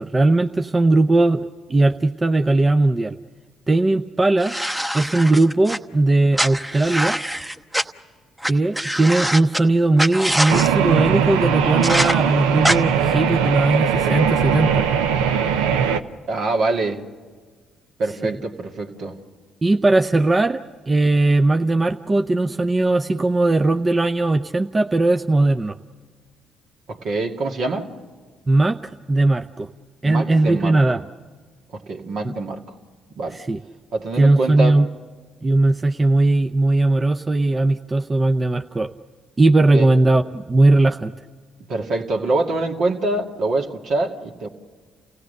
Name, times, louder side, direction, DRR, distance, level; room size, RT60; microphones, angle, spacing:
voice 1, 0.0-3.2 3.7-4.5 4.9-7.2 8.4-14.8 18.2-18.4 19.6-25.8 28.5-28.8 29.1-29.7 30.0-31.0 32.2-32.3 33.3-33.6 34.2-34.9 35.4-38.9 39.4-41.1, right 2 dB, 30° right, 6 dB, 0.7 m, -18 dB
sound 1, 4.4-5.8 6.3-7.8 8.4-8.5 8.7-9.6 10.0-10.7 11.8-12.1 12.6-12.8, equal, 10° right, 1.0 m, -23 dB
sound 2, 10.5-16.0, right 8 dB, 85° right, 0.7 m, -20 dB
voice 2, 16.3-17.0 18.0-19.2 26.9-27.9 30.0-30.8 31.7-32.6 33.2-33.4 33.9-34.8 39.7-39.9 41.7-44.5, right 2 dB, 65° right, 2 dB, 2.1 m, -24 dB
29.0 x 16.5 x 6.6 m, 1.5 s
hypercardioid pair, 55°, 0 cm